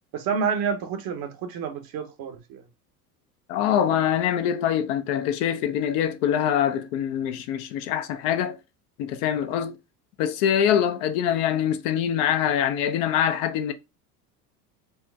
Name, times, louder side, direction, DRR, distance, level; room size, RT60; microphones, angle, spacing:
voice 1, 0.1-2.6, right 6 dB, 55° right, 0.9 m, -29 dB
voice 2, 3.5-8.6 9.0-9.8 10.2-13.7, left 9 dB, 65° left, 0.7 m, -24 dB
4.4 x 2.1 x 3.4 m
hypercardioid pair, 90°, 45 cm